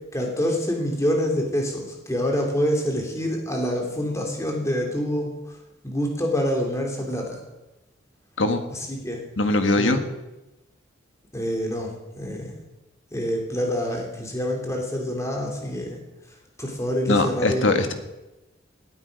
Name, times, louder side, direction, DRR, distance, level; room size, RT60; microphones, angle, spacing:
voice 1, 0.1-5.3 5.8-7.4 8.7-9.2 9.8-10.0 11.3-11.9 12.2-12.6 13.1-16.0 16.6-17.9, equal, 15° left, 1 dB, 2.8 m, -26 dB
voice 2, 9.4-10.0 17.1-17.9, left 2 dB, 75° left, 7 dB, 1.5 m, -21 dB
18.0 x 8.7 x 5.2 m, 0.99 s
head